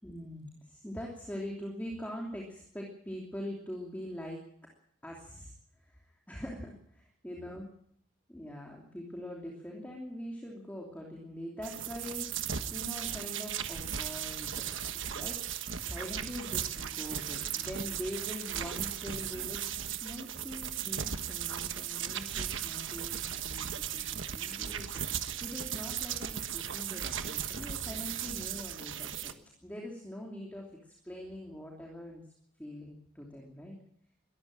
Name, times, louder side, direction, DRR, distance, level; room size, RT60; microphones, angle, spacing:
voice 1, 0.0-4.5 5.0-7.6 8.3-12.3 12.7-14.8 15.1-15.4 15.7-29.3 29.6-32.2 32.6-33.8, equal, 5° left, -1 dB, 2.9 m, -43 dB
sound 1, 11.6-29.3, right 9 dB, 65° right, 1.3 m, -37 dB
21.5 x 14.0 x 9.0 m, 0.68 s
head